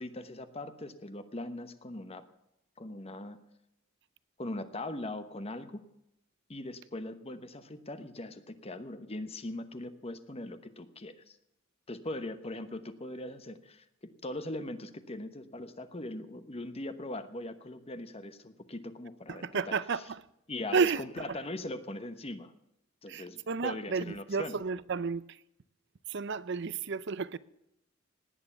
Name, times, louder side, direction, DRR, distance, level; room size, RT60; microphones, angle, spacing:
voice 1, 0.0-2.2 2.8-3.4 4.4-5.8 6.5-11.4 11.9-20.0 20.5-22.5 23.0-24.6, left 1 dB, 30° left, 1.0 m, -40 dB
voice 2, 19.3-20.2 20.7-21.4 23.1-25.4 26.1-27.4, right 5 dB, 60° right, 0.6 m, -32 dB
18.5 x 9.5 x 7.0 m
head